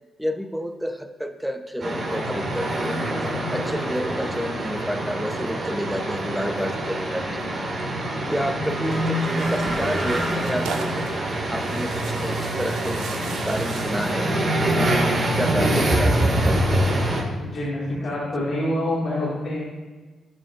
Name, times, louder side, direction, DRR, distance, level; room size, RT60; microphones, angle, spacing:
voice 1, 0.2-3.0 3.5-7.4 8.3-11.1 11.5-13.1 13.3-14.6 15.2-16.6, equal, 5° right, 7 dB, 0.8 m, -30 dB
sound 1, 1.8-17.2, right 1 dB, 50° right, 2.1 m, -25 dB
Tearing, 8.9-14.2, right 5 dB, 75° right, 0.6 m, -38 dB
voice 2, 15.4-15.9 17.3-19.6, left 1 dB, 60° left, -7 dB, 2.3 m, -27 dB
12.0 x 5.0 x 2.6 m, 1.3 s
hypercardioid pair, 40°, 0 cm